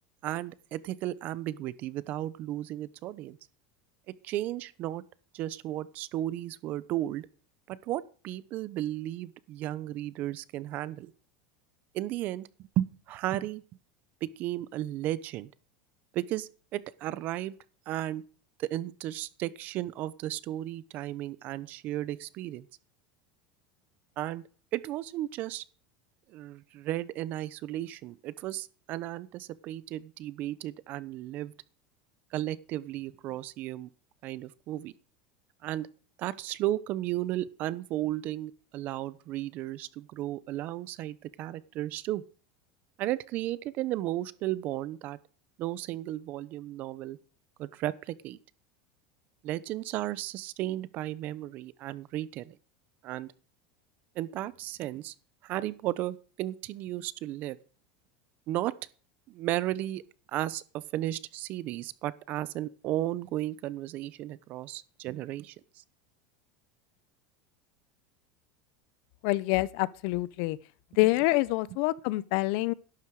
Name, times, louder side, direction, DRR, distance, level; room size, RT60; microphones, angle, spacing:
voice 1, 0.2-3.4 4.2-5.0 5.3-7.3 7.7-11.1 11.9-12.5 12.8-13.6 14.2-15.5 16.1-17.5 17.9-18.2 18.6-22.7 24.2-24.4 24.7-25.6 26.3-31.5 32.3-33.9 34.2-34.9 35.6-35.9 36.2-42.2 43.0-45.2 45.6-47.2 47.6-48.4 49.4-52.6 53.0-53.3 54.1-55.1 55.4-57.6 58.5-58.7 59.3-60.0 60.3-65.8, right 14 dB, 40° right, 0.9 m, -34 dB
voice 2, 69.2-70.6 71.0-72.7, left 20 dB, 55° left, 0.8 m, -26 dB
12.0 x 11.5 x 4.8 m
supercardioid pair, 160°, 5 cm